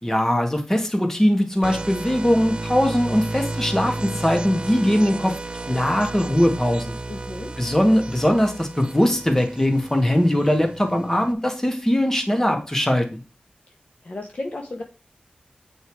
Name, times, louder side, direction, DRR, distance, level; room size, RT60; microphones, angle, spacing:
voice 1, 0.0-5.4 5.7-7.0 7.6-13.2, equal, 15° left, 4 dB, 2.0 m, -20 dB
sound 1, 1.6-11.3, right 2 dB, 35° right, 0.7 m, -33 dB
voice 2, 7.1-7.5 14.0-14.8, left 2 dB, 55° left, 2 dB, 1.4 m, -33 dB
8.4 x 5.4 x 4.8 m, 0.32 s
wide cardioid pair, 70°, 3 cm